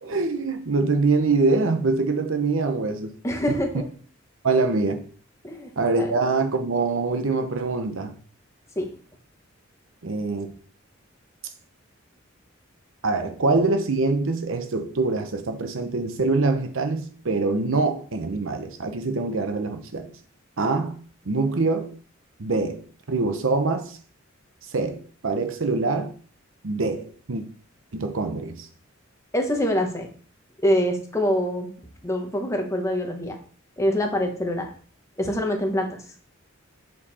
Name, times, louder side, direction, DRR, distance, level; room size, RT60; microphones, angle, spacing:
voice 1, 0.0-3.2 3.5-3.8 4.4-5.0 5.8-8.2 10.0-10.5 13.0-20.1 20.6-21.0 21.3-21.9 22.4-22.8 23.1-24.0 24.7-26.1 26.6-27.4 27.9-28.7, right 3 dB, 70° right, 0.8 m, -24 dB
voice 2, 3.2-3.9 5.4-5.7 6.0-6.1 8.8-8.9 29.3-30.1 30.6-31.7 32.0-33.4 33.8-34.7 35.2-36.0, equal, 15° left, 1.2 m, -24 dB
7.4 x 4.8 x 4.2 m
head